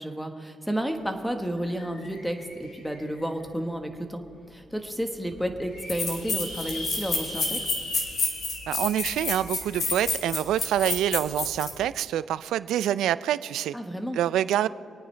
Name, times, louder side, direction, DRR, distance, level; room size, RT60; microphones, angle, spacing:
voice 1, 0.0-7.6 13.7-14.2, equal, ahead, 6 dB, 1.3 m, -31 dB
sound 1, 0.9-1.0 1.3-3.4 4.0-4.1 4.5-4.6 4.7-4.8 5.4-10.0, left 1 dB, 85° left, 3.2 m, -40 dB
sound 2, 5.3-5.4 5.9-11.7, left 3 dB, 55° left, 2.9 m, -29 dB
voice 2, 8.7-13.7 14.1-14.7, right 11 dB, 80° right, 16 dB, 0.4 m, -26 dB
26.5 x 9.2 x 3.3 m, 2.6 s
cardioid pair, 90°, 0 cm